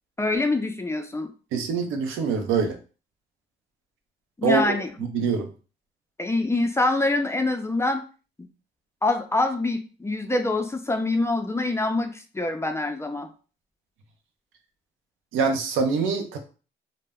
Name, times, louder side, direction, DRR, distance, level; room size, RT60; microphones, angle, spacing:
voice 1, 0.2-1.3 4.4-4.9 6.2-8.0 9.0-13.3, left 2 dB, 15° left, 6 dB, 0.4 m, -25 dB
voice 2, 1.5-2.8 4.4-4.7 5.1-5.5 15.3-16.4, right 5 dB, 90° right, 5 dB, 0.6 m, -24 dB
2.1 x 2.0 x 3.5 m, 0.36 s
cardioid pair, 90°, 20 cm